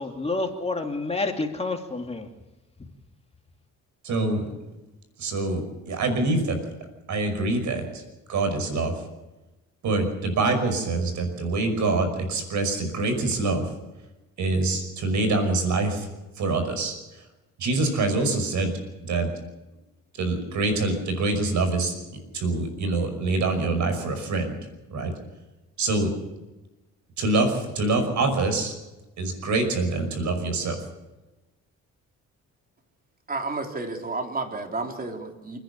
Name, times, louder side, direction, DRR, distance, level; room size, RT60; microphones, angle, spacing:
voice 1, 0.0-2.3, left 3 dB, 20° left, 4 dB, 2.6 m, -29 dB
voice 2, 4.0-4.4 5.2-6.6 7.1-8.0 8.3-8.9 9.8-13.7 14.4-16.1 16.4-17.0 17.6-18.7 19.0-19.3 20.2-24.6 24.9-25.1 25.8-26.1 27.2-28.7 29.2-30.8, right 3 dB, 70° right, 7 dB, 5.6 m, -25 dB
voice 3, 33.3-35.6, right 3 dB, 30° right, 3 dB, 3.5 m, -31 dB
28.5 x 10.5 x 8.5 m, 1.0 s
cardioid pair, 90°, 30 cm